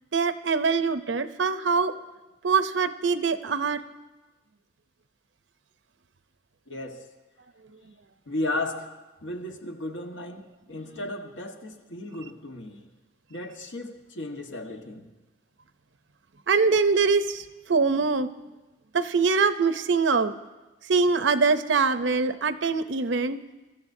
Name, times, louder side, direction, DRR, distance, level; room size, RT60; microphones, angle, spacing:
voice 1, 0.1-1.9 2.4-3.8 16.5-18.3 18.9-20.3 20.9-23.4, right 4 dB, 80° right, 0.7 m, -23 dB
voice 2, 6.7-7.1 8.3-8.9 9.2-12.9 13.3-15.1, left 2 dB, 85° left, 1.4 m, -35 dB
24.0 x 13.5 x 2.7 m
head